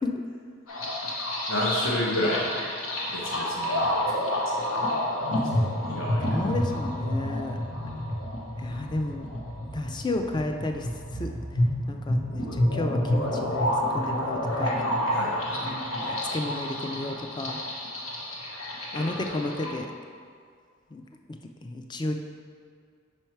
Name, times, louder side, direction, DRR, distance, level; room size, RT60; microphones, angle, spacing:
sound 1, 0.7-19.7, left 1 dB, 90° left, 1.2 m, -29 dB
voice 1, 1.5-2.7 3.1-4.7 5.4-6.4 15.1-15.4 18.9-19.1, left 1 dB, 70° left, -4 dB, 1.0 m, -31 dB
voice 2, 6.2-7.6 8.6-9.3 9.7-13.6 13.9-15.0 15.5-17.6 18.9-19.9 20.9-22.1, left 2 dB, 20° left, 4 dB, 0.4 m, -33 dB
5.4 x 4.5 x 4.5 m, 2.1 s
head